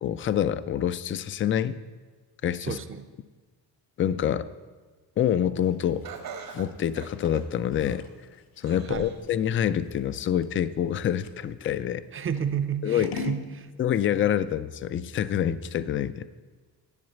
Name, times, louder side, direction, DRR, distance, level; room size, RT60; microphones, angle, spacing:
voice 1, 0.0-1.7 2.4-2.8 4.0-4.5 5.2-6.1 6.5-8.0 8.6-12.0 12.8-13.1 13.8-16.3, left 10 dB, 35° left, 15 dB, 0.4 m, -26 dB
voice 2, 2.6-3.1 8.9-9.1 12.1-13.7, right 7 dB, 35° right, 11 dB, 0.7 m, -31 dB
Scissors, 5.6-11.8 12.3-13.5, left 5 dB, 65° left, 1.1 m, -41 dB
Laughter, 6.0-8.2 8.6-9.3 9.8-9.9 10.8-10.9, right 7 dB, 70° right, 1.7 m, -42 dB
11.0 x 7.9 x 7.9 m, 1.4 s
cardioid pair, 145°, 37 cm